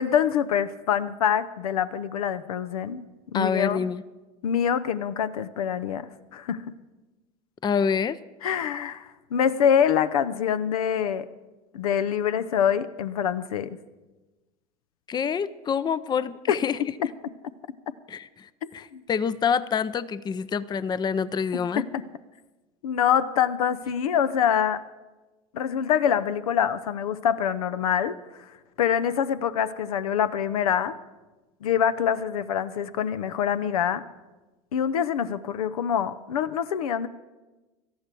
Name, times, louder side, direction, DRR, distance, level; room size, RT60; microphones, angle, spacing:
voice 1, 0.0-3.1 3.3-3.9 4.4-6.6 8.4-11.3 11.7-13.8 16.5-16.6 18.9-19.0 21.8-22.0 22.8-24.8 25.5-28.2 28.8-30.9 31.6-34.0 34.7-37.1, left 8 dB, 80° left, 13 dB, 0.7 m, -25 dB
voice 2, 3.3-4.0 7.6-8.2 15.1-17.1 18.1-21.8, left 6 dB, 25° left, 17 dB, 0.5 m, -27 dB
18.0 x 13.0 x 4.6 m, 1.1 s
hypercardioid pair, 80°, 18 cm